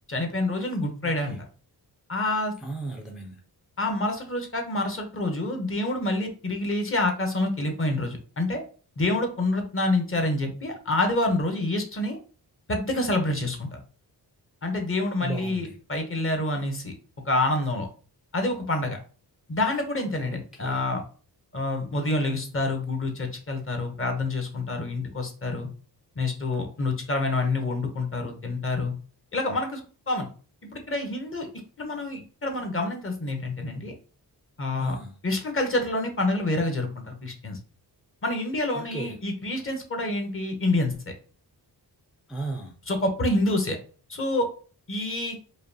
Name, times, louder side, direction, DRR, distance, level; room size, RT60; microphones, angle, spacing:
voice 1, 0.1-1.4 2.1-2.5 3.8-8.6 9.0-12.2 12.7-13.8 14.6-16.9 17.3-17.9 18.3-19.0 19.5-21.0 21.5-25.7 26.2-28.9 29.3-29.8 30.1-30.3 30.7-31.5 31.8-33.9 34.6-35.0 35.2-37.6 38.2-41.1 42.9-43.8 44.1-44.5 44.9-45.4, left 2 dB, 30° left, 4 dB, 0.8 m, -27 dB
voice 2, 1.0-1.4 2.6-3.4 15.2-15.7 20.2-20.8 34.8-35.2 38.7-39.2 42.3-42.7, right 2 dB, ahead, 0 dB, 0.4 m, -35 dB
5.0 x 2.3 x 2.7 m, 0.39 s
wide cardioid pair, 180°, 40 cm